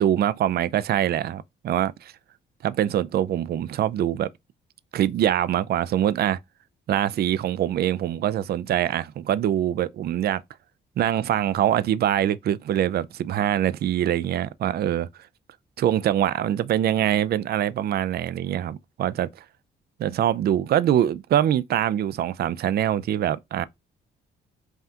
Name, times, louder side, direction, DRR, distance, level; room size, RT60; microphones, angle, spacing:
voice 1, 0.0-2.1 2.6-4.3 4.9-6.4 6.9-10.4 11.0-15.1 15.8-19.3 20.0-23.7, right 11 dB, 55° right, 0.4 m, -24 dB
5.6 x 2.4 x 2.8 m
cardioid pair, 90°, 20 cm